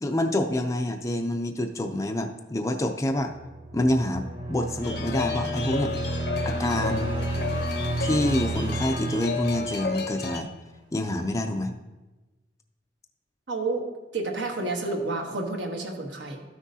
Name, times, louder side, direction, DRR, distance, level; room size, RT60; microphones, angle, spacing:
voice 1, 0.0-3.3 3.7-5.9 6.4-7.1 8.0-10.5 10.9-11.7, left 1 dB, 15° left, 4 dB, 0.4 m, -27 dB
sound 1, 3.3-10.6, right 2 dB, 40° right, 2.2 m, -32 dB
sound 2, 4.8-10.4, left 4 dB, 60° left, 0.7 m, -32 dB
voice 2, 13.5-13.8 14.1-16.4, right 3 dB, 75° right, 1 dB, 1.3 m, -30 dB
13.5 x 6.0 x 2.7 m, 1.2 s
head